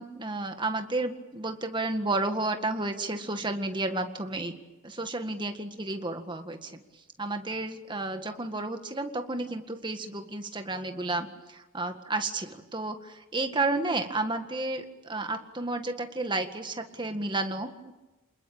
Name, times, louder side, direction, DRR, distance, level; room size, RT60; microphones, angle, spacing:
voice 1, 0.0-4.5 4.8-6.8 7.2-17.9, right 2 dB, 25° right, 6 dB, 1.8 m, -32 dB
27.5 x 21.0 x 8.8 m, 1.1 s
head